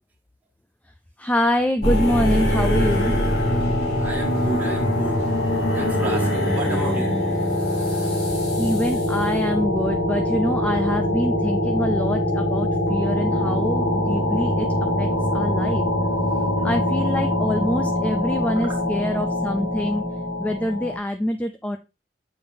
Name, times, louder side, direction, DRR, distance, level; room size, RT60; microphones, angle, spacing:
voice 1, 1.2-3.2 8.6-15.8 16.6-20.0 20.4-21.8, left 1 dB, 10° left, 0.3 m, -25 dB
sound 1, 1.8-21.0, left 1 dB, 75° left, 2.8 m, -23 dB
voice 2, 4.0-5.2 5.7-7.3 16.6-16.8, equal, 10° right, 1.8 m, -31 dB
6.9 x 5.2 x 2.7 m
head